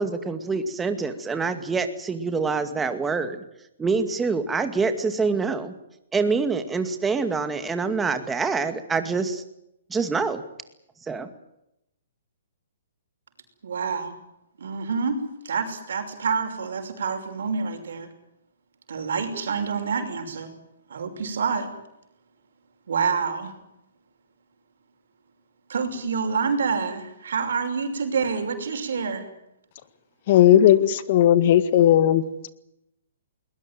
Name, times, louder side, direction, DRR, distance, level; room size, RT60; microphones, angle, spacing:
voice 1, 0.0-3.4 3.8-5.7 6.1-9.4 9.9-10.4 11.1-11.3, right 4 dB, 10° right, 9 dB, 2.2 m, -25 dB
voice 2, 13.6-14.2 14.6-15.2 15.4-18.1 18.9-20.5 20.9-21.7 22.9-23.5 25.7-29.3, right 5 dB, 75° right, 6 dB, 6.0 m, -27 dB
voice 3, 30.3-32.2, left 11 dB, 45° left, 15 dB, 1.9 m, -16 dB
21.5 x 20.5 x 9.2 m, 0.83 s
hypercardioid pair, 150°, 0 cm